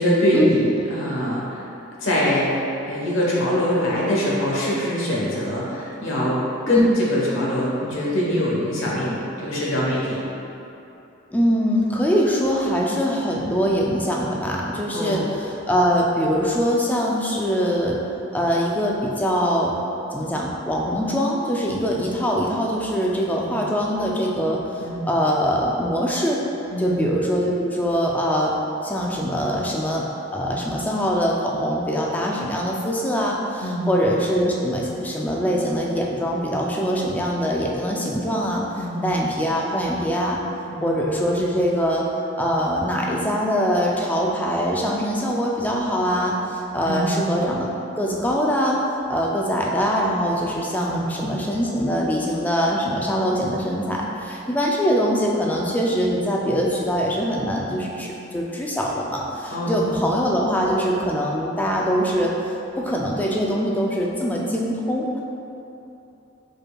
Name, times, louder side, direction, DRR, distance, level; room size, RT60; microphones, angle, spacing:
voice 1, 0.0-1.6 2.0-10.2 14.9-15.3 23.4-23.5 24.8-25.0 26.7-27.0 33.6-33.9 38.8-39.0 40.7-41.0 46.9-47.2 50.8-51.1 59.5-59.9, equal, 85° left, -6 dB, 1.1 m, -23 dB
voice 2, 11.3-18.0 18.3-19.8 20.1-26.4 26.8-28.5 28.8-30.1 30.3-38.6 39.0-40.4 40.8-42.1 42.4-47.7 48.0-48.8 49.1-62.3 62.8-65.2, equal, 10° left, -2 dB, 0.3 m, -23 dB
5.0 x 4.5 x 2.3 m, 2.9 s
head